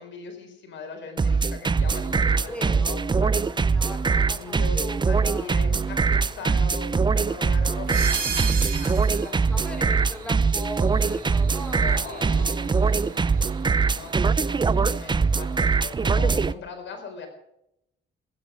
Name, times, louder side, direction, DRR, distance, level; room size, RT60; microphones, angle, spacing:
voice 1, 0.0-3.3 4.3-10.0 11.8-13.2 13.9-17.3, left 5 dB, 70° left, 5 dB, 4.4 m, -40 dB
sound 1, 1.2-16.5, right 4 dB, 25° right, 0.6 m, -22 dB
sound 2, 1.8-15.8, right 6 dB, 50° right, 3.0 m, -39 dB
voice 2, 2.5-5.5 9.2-13.1, equal, 5° left, 3 dB, 4.9 m, -39 dB
19.5 x 10.5 x 6.2 m, 0.80 s
cardioid pair, 90°, 20 cm